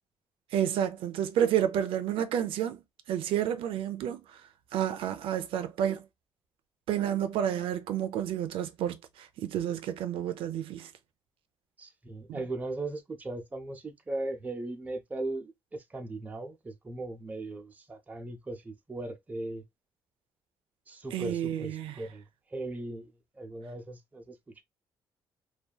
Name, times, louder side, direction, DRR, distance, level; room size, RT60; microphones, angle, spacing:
voice 1, 0.5-2.8 3.1-4.2 4.7-6.0 6.9-10.9 12.3-12.4 21.1-21.9, right 10 dB, 75° right, 0.4 m, -30 dB
voice 2, 11.8-19.6 20.9-22.2 22.5-24.6, right 2 dB, 15° right, 0.5 m, -38 dB
2.7 x 2.2 x 2.2 m
cardioid pair, 130°, 9 cm